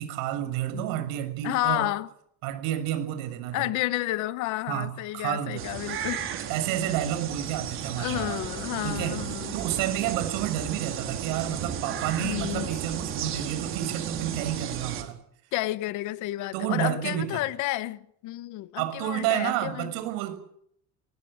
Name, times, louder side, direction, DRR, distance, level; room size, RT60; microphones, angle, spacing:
voice 1, 0.0-1.9 2.4-3.7 4.7-5.7 6.3-8.4 8.8-9.2 9.5-15.2 16.5-17.4 18.8-20.4, right 12 dB, 80° right, 6.7 m, -30 dB
voice 2, 1.4-2.1 3.5-6.3 8.0-9.6 12.2-12.7 15.5-19.9, left 17 dB, 60° left, 1.2 m, -31 dB
sound 1, 5.6-15.0, right 8 dB, 40° right, 4.4 m, -34 dB
25.0 x 21.0 x 8.9 m
cardioid pair, 175°, 33 cm